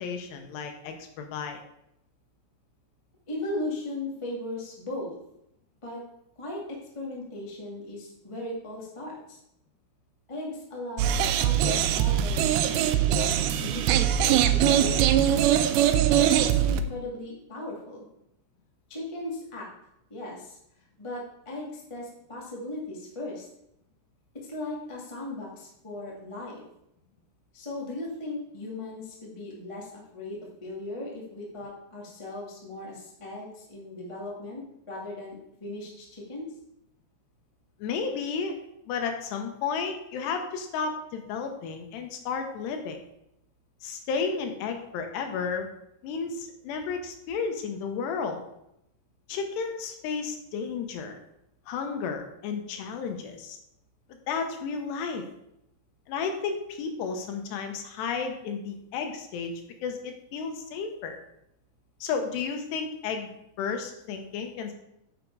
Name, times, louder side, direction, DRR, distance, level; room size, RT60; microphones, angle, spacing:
voice 1, 0.0-1.6 37.8-38.6 38.9-43.0 43.8-45.7 46.0-48.4 49.3-51.2 51.7-53.6 54.3-55.2 56.1-59.5 59.8-61.2 62.0-63.3 63.6-64.7, left 5 dB, 80° left, 5 dB, 3.1 m, -32 dB
voice 2, 3.3-5.2 5.8-6.0 6.4-9.4 10.3-15.4 16.3-18.0 18.9-19.7 20.1-20.6 21.0-23.5 24.3-26.6 27.5-36.4, left 2 dB, 25° left, -3 dB, 0.6 m, -37 dB
sound 1, 11.0-16.8, right 10 dB, 85° right, 2.2 m, -22 dB
9.2 x 6.6 x 4.7 m, 0.80 s
omnidirectional pair, 5.0 m